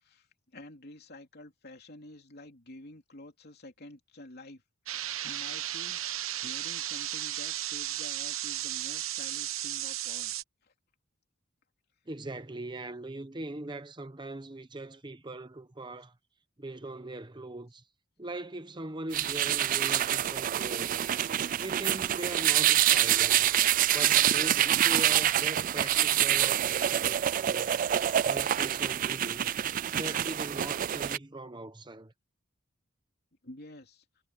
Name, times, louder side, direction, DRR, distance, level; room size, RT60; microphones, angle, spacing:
voice 1, 0.0-4.6 4.9-6.0 6.4-10.3 10.6-10.7 33.4-34.0, left 1 dB, 50° left, 3.3 m, -49 dB
sound 1, 4.9-10.4, right 13 dB, 85° right, 1.1 m, -35 dB
voice 2, 12.1-16.1 16.6-17.8 18.2-21.0 21.6-23.5 23.9-27.8 28.2-29.5 29.9-32.1, right 2 dB, 25° right, 0.9 m, -41 dB
sound 2, 19.1-31.2, right 11 dB, 40° right, 0.3 m, -26 dB
head